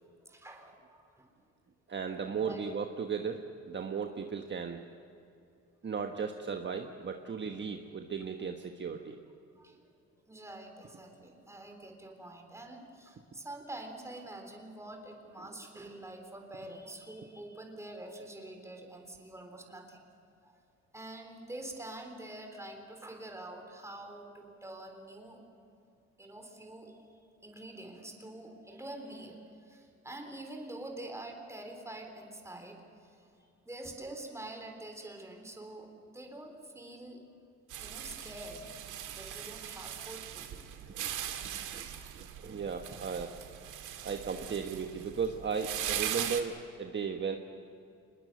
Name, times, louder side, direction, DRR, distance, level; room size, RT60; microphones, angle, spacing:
voice 1, 0.2-1.3 2.2-2.6 9.6-9.8 10.3-20.1 20.4-20.6 20.9-25.4 26.2-27.0 27.4-37.2 37.8-38.7 39.1-40.7 41.9-42.1 44.3-44.4, right 1 dB, 10° right, 3 dB, 3.6 m, -46 dB
voice 2, 1.9-4.9 5.8-9.2 40.9-41.1 41.7-41.9 42.1-43.3 44.0-47.4, right 6 dB, 35° right, 4 dB, 1.4 m, -36 dB
sound 1, 37.7-46.4, right 10 dB, 85° right, 2.0 m, -40 dB
24.5 x 21.0 x 8.0 m, 2.6 s
cardioid pair, 90°, 30 cm